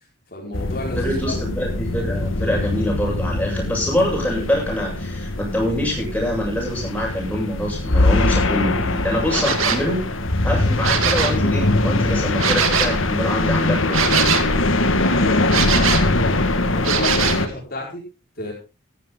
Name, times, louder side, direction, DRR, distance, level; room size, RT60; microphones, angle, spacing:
voice 1, 0.3-1.4 15.0-18.0 18.4-18.5, left 1 dB, 45° left, -2 dB, 5.1 m, -31 dB
sound 1, 0.5-17.5, left 2 dB, 80° left, 1.7 m, -22 dB
voice 2, 1.0-10.1 10.4-14.3, left 1 dB, 5° left, -3 dB, 7.7 m, -25 dB
sound 2, 9.3-9.9 10.7-11.4 12.4-13.0 13.9-14.5 15.5-16.1 16.8-17.5, right 6 dB, 85° right, 2.4 m, -21 dB
15.5 x 14.0 x 3.8 m, 0.31 s
head